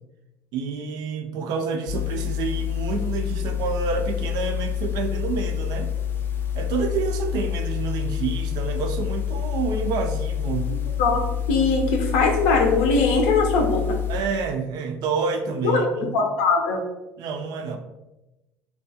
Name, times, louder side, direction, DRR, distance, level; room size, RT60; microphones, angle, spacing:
voice 1, 0.5-5.9 6.5-10.7 14.1-16.1 17.2-17.8, right 5 dB, 65° right, 6 dB, 0.4 m, -28 dB
sound 1, 1.9-14.2, left 9 dB, 30° left, 0.3 m, -27 dB
voice 2, 11.5-14.0 15.6-16.9, left 4 dB, 85° left, 2 dB, 0.5 m, -21 dB
2.3 x 2.3 x 2.6 m, 1.0 s
supercardioid pair, 85°, 8 cm